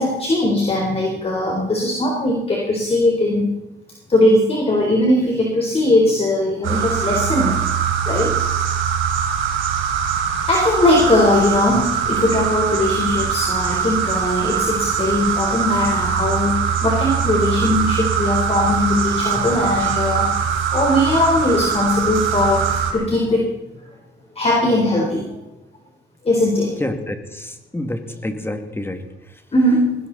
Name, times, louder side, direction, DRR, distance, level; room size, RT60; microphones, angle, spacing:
voice 1, 0.0-3.5 4.1-7.6 8.1-8.3 10.4-20.3 20.7-23.5 24.4-25.3 26.2-26.7 29.5-30.0, left 1 dB, 30° left, -1 dB, 4.0 m, -19 dB
sound 1, 6.6-22.9, right 7 dB, 80° right, 3.5 m, -22 dB
voice 2, 26.8-29.4, left 1 dB, 10° left, 6 dB, 2.3 m, -28 dB
19.5 x 17.5 x 4.1 m, 0.95 s
cardioid pair, 90°, 20 cm